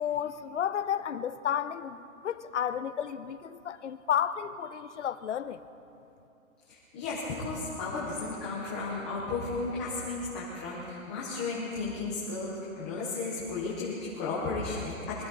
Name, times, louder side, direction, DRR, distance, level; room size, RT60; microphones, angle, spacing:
voice 1, 0.0-5.6, left 9 dB, 55° left, 12 dB, 0.7 m, -32 dB
voice 2, 6.7-15.3, left 3 dB, 5° left, -7 dB, 0.7 m, -34 dB
23.5 x 15.0 x 4.0 m, 2.8 s
hypercardioid pair, 175°, 41 cm